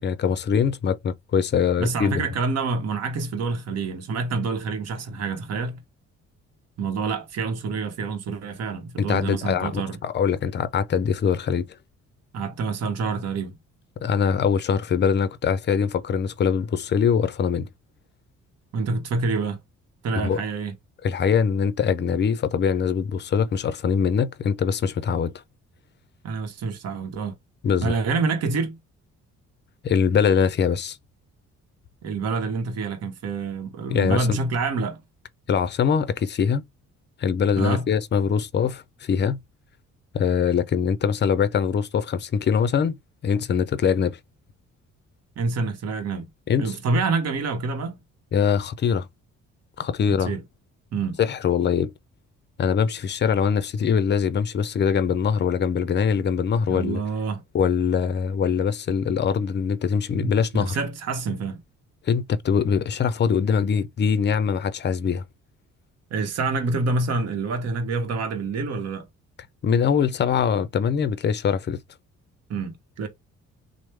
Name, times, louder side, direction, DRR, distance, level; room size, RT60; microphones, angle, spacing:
voice 1, 0.0-2.3 9.0-11.6 14.0-17.7 20.2-20.4 21.0-25.3 27.6-27.9 29.8-31.0 33.9-34.4 35.5-36.6 37.2-39.4 40.1-43.0 43.2-44.2 46.5-46.8 48.3-49.1 49.8-50.3 51.2-51.9 52.6-57.0 57.5-60.8 62.1-65.2 69.6-71.8, left 7 dB, 35° left, 0.5 m, -23 dB
voice 2, 1.8-5.8 6.8-10.0 12.3-13.6 18.7-19.6 20.0-20.7 26.2-27.4 27.8-28.8 32.0-35.0 37.6-37.9 45.4-46.3 46.6-48.0 50.2-50.4 50.9-51.2 56.7-57.4 60.2-61.6 66.1-69.1 72.5-73.1, right 4 dB, 55° right, 0.9 m, -27 dB
3.1 x 2.0 x 3.2 m
cardioid pair, 90°, 30 cm